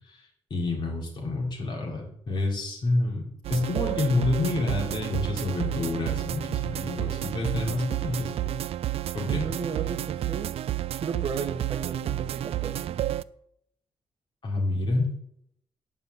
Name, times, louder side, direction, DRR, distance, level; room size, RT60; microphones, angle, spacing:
voice 1, 0.5-8.6 9.1-9.4 14.4-15.1, left 2 dB, 45° left, -1 dB, 3.0 m, -28 dB
sound 1, 3.4-13.2, right 13 dB, 65° right, 0.4 m, -31 dB
voice 2, 9.2-13.0, right 6 dB, 50° right, 3 dB, 0.8 m, -34 dB
9.7 x 5.5 x 8.2 m, 0.74 s
wide cardioid pair, 165°, 11 cm